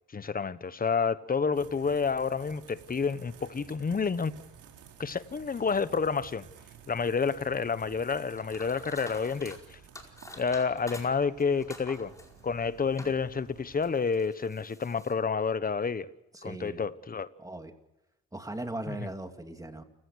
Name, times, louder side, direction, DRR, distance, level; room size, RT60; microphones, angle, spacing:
voice 1, 0.1-4.3 5.0-6.5 6.9-9.8 10.4-12.1 12.4-16.1 16.4-17.3 18.9-19.0, left 5 dB, 30° left, 1.1 m, -29 dB
sound 1, 1.5-13.9, right 7 dB, 80° right, 4.9 m, -53 dB
sound 2, 8.3-9.6 9.9-13.2 13.7-15.1, left 1 dB, 10° left, 4.9 m, -48 dB
voice 2, 16.3-16.8 17.4-17.8 18.3-19.8, right 2 dB, 10° right, 2.6 m, -38 dB
29.5 x 16.5 x 6.5 m
cardioid pair, 90°, 30 cm